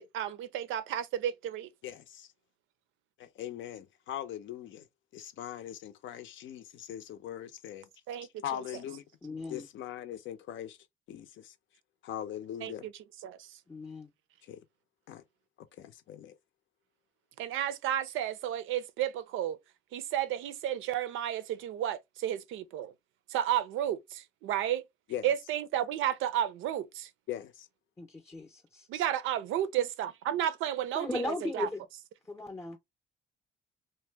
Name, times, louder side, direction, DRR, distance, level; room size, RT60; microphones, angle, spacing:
voice 1, 0.0-1.7 8.1-8.4 12.6-12.9 13.2-13.5 17.4-19.6 19.9-22.9 23.3-24.9 25.2-27.1 28.9-31.7, right 11 dB, 90° right, 0.5 m, -32 dB
voice 2, 1.8-2.3 3.2-4.9 5.1-7.9 8.4-9.0 9.5-10.8 11.1-11.5 12.0-12.9 14.4-14.6 15.1-15.2 15.6-16.3 25.1-25.3 27.3-27.7, left 11 dB, 75° left, 0.6 m, -41 dB
voice 3, 9.2-9.7 13.7-14.1 28.0-28.9 30.9-31.9 32.3-32.8, left 2 dB, 15° left, 0.5 m, -37 dB
2.6 x 2.1 x 3.2 m
cardioid pair, 90°, 20 cm